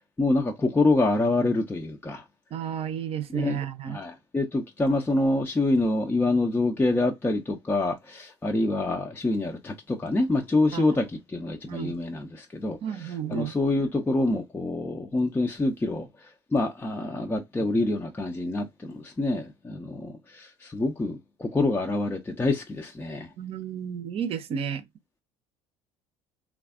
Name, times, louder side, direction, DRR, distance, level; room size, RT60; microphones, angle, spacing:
voice 1, 0.2-2.2 3.3-3.6 3.9-16.1 16.5-23.3, left 2 dB, 15° left, 0.5 m, -26 dB
voice 2, 2.5-4.0 10.7-10.9 11.7-12.0 12.8-13.5 23.4-24.8, right 8 dB, 40° right, 0.7 m, -32 dB
3.2 x 2.3 x 2.3 m
figure-of-eight pair, 60°, 15 cm